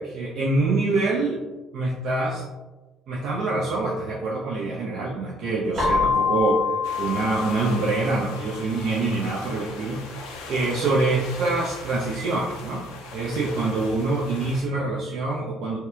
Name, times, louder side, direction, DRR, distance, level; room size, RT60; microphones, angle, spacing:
voice 1, 0.0-1.4 1.7-2.4 3.1-6.7 7.0-10.2 10.5-12.8 13.1-15.8, right 3 dB, 65° right, -4 dB, 0.4 m, -25 dB
Keyboard (musical), 5.8-8.5, left 5 dB, 40° right, 0.9 m, -26 dB
sound 1, 6.8-14.6, left 3 dB, 80° left, 0.4 m, -39 dB
2.8 x 2.2 x 2.3 m, 1.2 s
hypercardioid pair, 60°, 0 cm